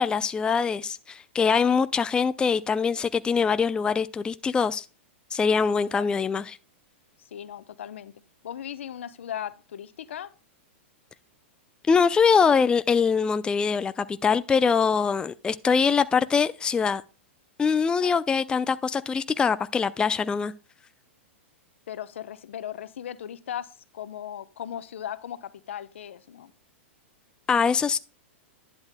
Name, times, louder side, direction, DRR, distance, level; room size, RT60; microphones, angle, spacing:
voice 1, 0.0-4.8 5.3-6.6 11.9-17.0 17.6-20.5 27.5-28.0, left 6 dB, 15° left, 0.4 m, -23 dB
voice 2, 5.8-6.3 7.3-10.3 18.0-18.1 21.9-26.5, left 10 dB, 75° left, 0.8 m, -38 dB
11.0 x 10.0 x 2.2 m
hypercardioid pair, 120°, 7 cm